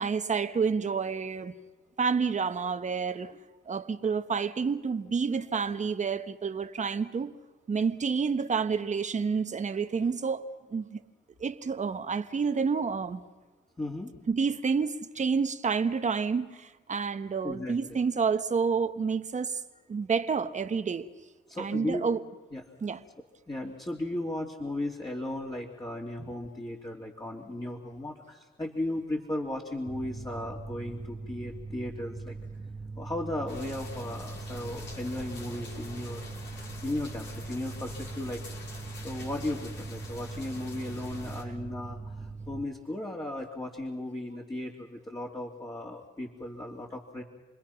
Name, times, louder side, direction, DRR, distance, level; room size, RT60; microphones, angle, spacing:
voice 1, 0.0-1.5 2.0-3.4 3.7-7.3 7.7-11.0 11.4-13.2 14.3-19.6 19.9-21.1 21.6-22.2 22.8-23.0, right 5 dB, 35° right, 1.2 m, -29 dB
voice 2, 13.8-14.1 17.4-18.0 21.5-22.1 22.5-22.7 23.5-32.4 32.9-36.2 36.8-38.4 38.7-47.2, left 1 dB, 20° left, 2.8 m, -36 dB
Mechanical fan, 29.9-42.6, right 4 dB, 20° right, 1.3 m, -41 dB
sound 1, 33.5-41.4, left 4 dB, 65° left, 5.6 m, -46 dB
29.5 x 21.0 x 5.8 m
cardioid pair, 90°, 20 cm